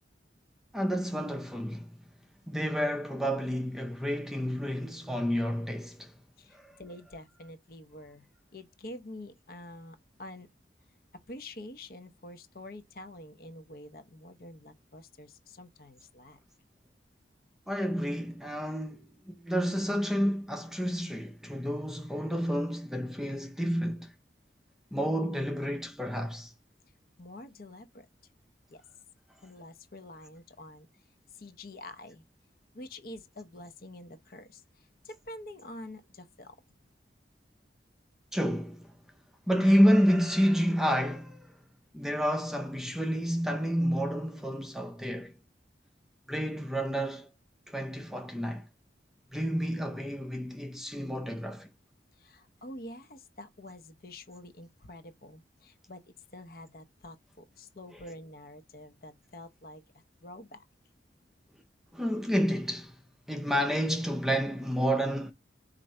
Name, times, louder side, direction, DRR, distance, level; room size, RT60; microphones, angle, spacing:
voice 1, 0.7-2.0 2.5-6.1 6.5-6.7 17.7-24.1 24.9-26.5 38.3-38.9 39.5-41.6 41.9-45.3 46.3-47.3 47.7-48.7 49.3-51.7 61.9-63.0 63.3-65.3, equal, ahead, 0.4 m, -29 dB
voice 2, 6.4-8.3 8.5-10.5 11.1-16.4 27.2-28.1 28.7-28.8 29.4-31.1 31.3-32.2 32.7-36.6 52.1-59.8 60.2-60.6, left 1 dB, 55° left, 0.7 m, -47 dB
4.5 x 2.5 x 4.2 m
head